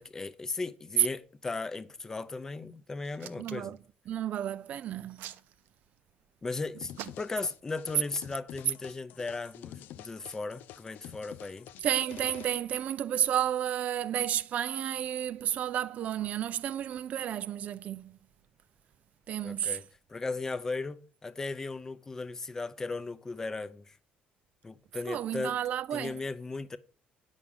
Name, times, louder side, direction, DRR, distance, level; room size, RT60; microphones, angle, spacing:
voice 1, 0.0-3.7 6.4-6.9 7.2-11.7 19.4-19.8 20.1-24.0 24.6-25.6 25.9-26.8, left 3 dB, 15° left, 0.7 m, -36 dB
Hands, 3.0-3.8 4.8-6.0 6.9-7.5 8.1-8.4, right 12 dB, 85° right, 1.0 m, -45 dB
voice 2, 3.4-3.8 4.1-5.3 11.8-18.2 19.3-19.8 25.1-26.2, right 10 dB, 45° right, 0.5 m, -32 dB
sound 1, 6.8-12.4, left 12 dB, 65° left, 0.5 m, -48 dB
10.0 x 6.2 x 5.4 m
cardioid pair, 175°, 3 cm